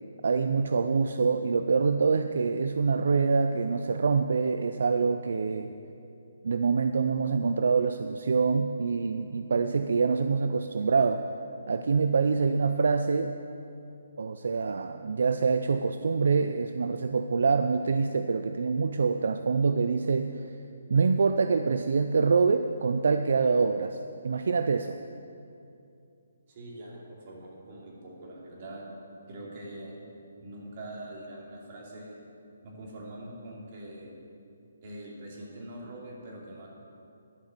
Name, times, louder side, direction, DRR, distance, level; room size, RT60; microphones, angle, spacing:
voice 1, 0.2-5.7 6.4-11.2 11.7-13.3 14.2-20.5 20.9-24.0 24.2-25.0, right 5 dB, 65° right, 8 dB, 0.5 m, -25 dB
voice 2, 26.5-28.8 29.3-30.0 30.4-32.2 32.6-34.2 34.8-36.7, right 1 dB, 35° right, -3 dB, 2.8 m, -43 dB
12.0 x 6.5 x 7.8 m, 2.6 s
hypercardioid pair, 160°, 0 cm